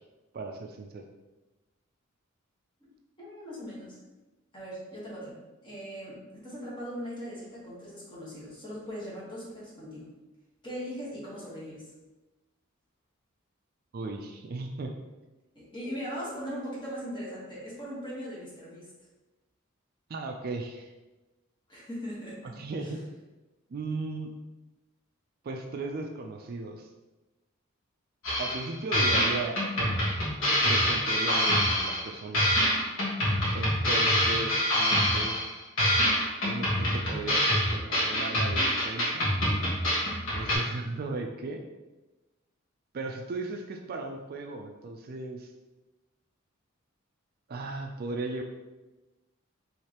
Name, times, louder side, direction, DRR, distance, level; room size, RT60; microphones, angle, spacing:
voice 1, 0.3-1.0 13.9-14.9 20.1-20.9 22.4-23.0 23.7-24.3 25.4-26.9 28.4-30.0 30.6-32.4 33.5-35.4 36.4-39.2 40.3-41.6 42.9-45.5 47.5-48.4, right 3 dB, 45° right, 3 dB, 0.3 m, -36 dB
voice 2, 3.2-4.0 4.5-10.1 10.6-11.9 15.5-18.9 21.7-22.5 22.8-22.9, equal, 20° left, -6 dB, 1.3 m, -39 dB
sound 1, 28.2-28.7 28.9-32.1 32.3-35.5 35.8-40.5, equal, 65° left, 1.4 m, -26 dB
4.8 x 3.1 x 2.9 m, 1.1 s
head